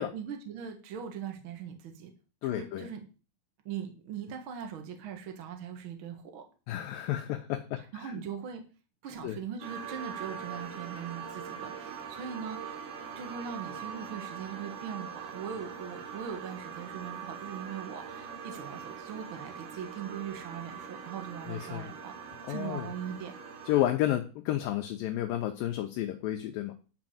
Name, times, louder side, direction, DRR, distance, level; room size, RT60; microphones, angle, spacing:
voice 1, 0.0-2.1 2.4-3.1 3.6-6.4 7.8-8.6 9.0-12.8 13.1-22.1 22.5-23.3, right 7 dB, 50° right, 5 dB, 1.7 m, -40 dB
voice 2, 2.4-2.9 6.7-8.2 9.2-9.4 21.5-21.9 22.4-22.9 23.7-26.8, left 13 dB, 75° left, 5 dB, 2.4 m, -31 dB
sound 1, 9.6-23.9, right 7 dB, 75° right, 6.0 m, -42 dB
11.0 x 4.9 x 7.7 m, 0.35 s
omnidirectional pair, 4.4 m